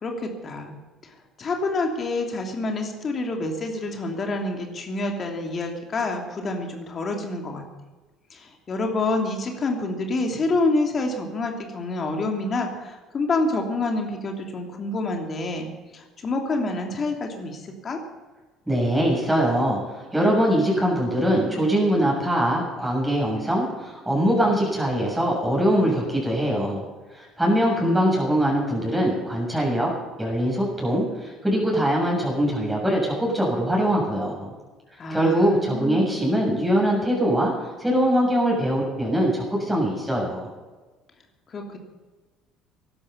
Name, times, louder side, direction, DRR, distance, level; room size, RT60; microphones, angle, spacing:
voice 1, 0.0-7.6 8.3-18.0 35.0-36.1 41.5-41.8, left 2 dB, 35° left, 3 dB, 2.9 m, -28 dB
voice 2, 18.7-19.8 20.1-26.8 27.1-29.9 30.2-34.5 35.1-37.5 37.8-40.5, equal, 5° right, -3 dB, 6.9 m, -22 dB
17.0 x 12.0 x 7.1 m, 1.3 s
figure-of-eight pair, 55°, 0 cm